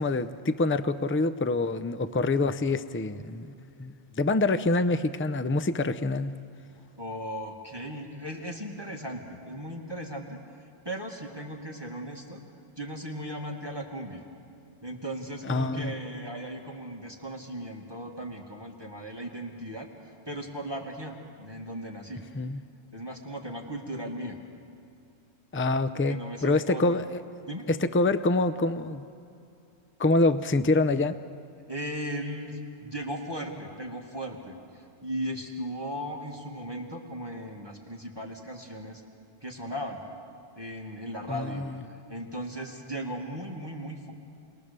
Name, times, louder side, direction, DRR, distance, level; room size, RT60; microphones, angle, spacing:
voice 1, 0.0-3.5 3.8-6.3 15.4-15.9 22.3-22.6 25.5-27.2 27.7-29.1 30.0-31.1 41.3-41.7, left 2 dB, 15° left, 12 dB, 0.5 m, -26 dB
voice 2, 7.0-10.4 10.9-12.4 12.8-14.2 14.8-22.2 22.9-24.4 26.1-26.8 27.5-27.7 31.7-39.0 39.4-40.0 40.6-44.1, equal, 20° right, 0 dB, 2.1 m, -37 dB
29.5 x 22.0 x 6.8 m, 2.5 s
omnidirectional pair, 1.2 m